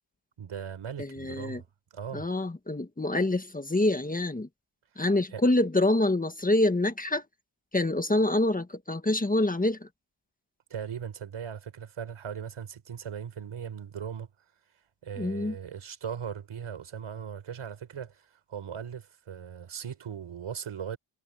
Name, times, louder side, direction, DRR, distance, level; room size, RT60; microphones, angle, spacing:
voice 1, 0.4-1.7 1.9-2.3 5.3-5.4 10.7-14.3 15.0-21.0, right 8 dB, 85° right, 4.4 m, -38 dB
voice 2, 1.0-1.6 2.1-4.5 5.0-7.2 7.7-9.9 15.2-15.5, left 2 dB, 15° left, 1.6 m, -26 dB
wide cardioid pair, 110°, 48 cm